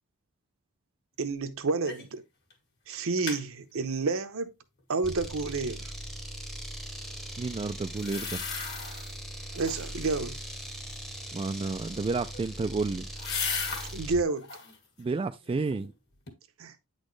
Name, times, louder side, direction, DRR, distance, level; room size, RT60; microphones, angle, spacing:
voice 1, 1.2-2.2 2.9-4.5 4.9-5.9 9.5-10.4 13.9-14.5 16.6-16.7, right 3 dB, 65° right, 0.8 m, -30 dB
sound 1, 1.8-2.2 2.5-2.6 2.9-3.4 7.9-9.1 9.5-10.0 12.0-14.0 14.4-14.8 15.3-15.9 16.3-16.4, left 5 dB, 50° left, 1.7 m, -36 dB
sound 2, 5.0-14.2, right 1 dB, ahead, 0.9 m, -40 dB
voice 2, 7.4-8.4 11.3-13.1 15.0-15.9, right 3 dB, 25° right, 0.3 m, -31 dB
8.9 x 4.2 x 3.1 m
head